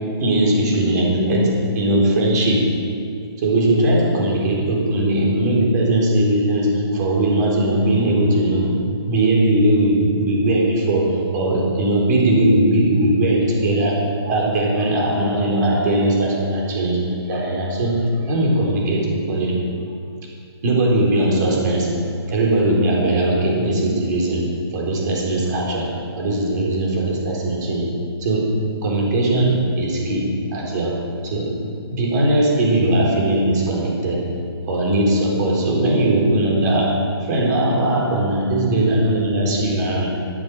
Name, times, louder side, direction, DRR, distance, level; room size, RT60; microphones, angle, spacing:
voice 1, 0.2-2.7 3.4-8.8 9.1-18.0 18.2-19.6 20.6-21.9 22.3-24.5 24.7-27.9 28.2-28.5 28.8-31.6 31.9-34.3 34.7-40.1, right 1 dB, 40° right, -2 dB, 4.1 m, -19 dB
12.5 x 9.3 x 6.7 m, 2.4 s
hypercardioid pair, 150°, 14 cm